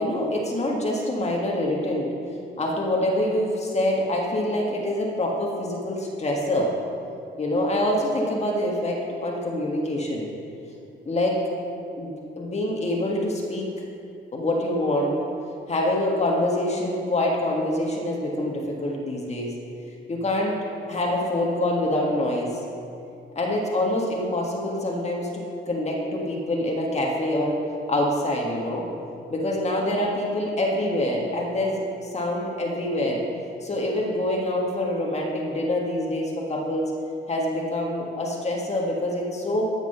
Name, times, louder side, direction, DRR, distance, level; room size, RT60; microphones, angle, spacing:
voice 1, 0.0-2.1 2.6-6.7 7.4-10.3 11.0-11.4 12.0-13.7 14.3-15.2 15.7-19.5 20.1-20.6 20.9-22.6 23.3-27.6 27.9-28.9 29.3-33.2 33.6-36.9 37.3-39.7, left 1 dB, 35° left, -2 dB, 1.6 m, -25 dB
14.0 x 5.9 x 5.6 m, 2.7 s
cardioid pair, 90°, 20 cm